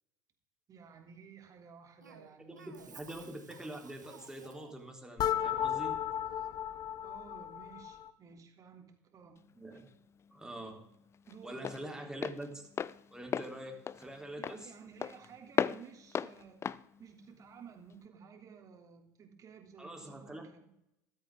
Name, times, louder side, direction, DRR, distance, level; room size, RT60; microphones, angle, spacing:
voice 1, 0.7-3.0 7.0-9.4 11.3-11.7 14.4-16.6 17.0-20.7, right 6 dB, 35° right, 4 dB, 3.1 m, -54 dB
Cough, 2.0-4.9, right 6 dB, 90° right, 1.2 m, -55 dB
voice 2, 2.5-6.0 9.6-9.9 10.3-10.9 11.4-12.6 13.1-14.7 19.8-20.5, right 1 dB, 5° right, 1 dB, 3.7 m, -45 dB
sound 1, 5.2-8.1, left 10 dB, 45° left, 0.9 m, -34 dB
Walk footsteps, 9.4-18.1, left 7 dB, 30° left, 0.5 m, -38 dB
14.0 x 13.5 x 3.8 m, 0.80 s
hypercardioid pair, 75°, 9 cm